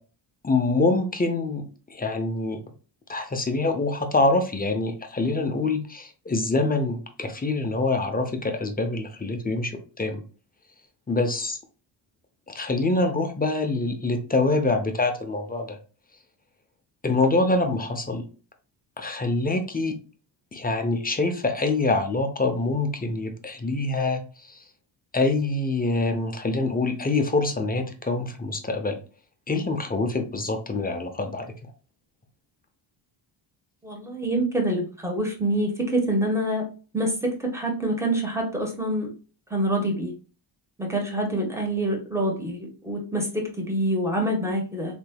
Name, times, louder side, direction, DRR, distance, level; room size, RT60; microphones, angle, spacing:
voice 1, 0.4-2.6 3.1-10.2 11.1-11.6 12.5-15.8 17.0-18.2 19.0-20.0 20.5-24.6 25.1-29.0 29.5-31.5, left 2 dB, 20° left, 6 dB, 0.6 m, -25 dB
voice 2, 33.8-36.6 36.9-39.1 39.5-40.1 40.8-45.0, right 1 dB, 5° right, 0 dB, 1.3 m, -26 dB
3.3 x 3.2 x 2.3 m, 0.37 s
cardioid pair, 100°, 48 cm